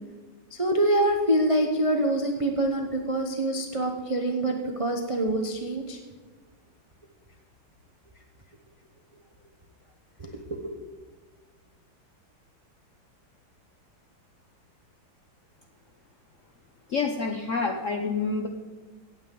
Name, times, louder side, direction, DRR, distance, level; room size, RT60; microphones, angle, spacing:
voice 1, 0.5-6.0 10.2-10.7, right 1 dB, 45° right, 3 dB, 0.4 m, -25 dB
voice 2, 16.9-18.5, left 4 dB, 65° left, 4 dB, 0.7 m, -28 dB
16.5 x 8.8 x 3.8 m, 1.4 s
omnidirectional pair, 2.3 m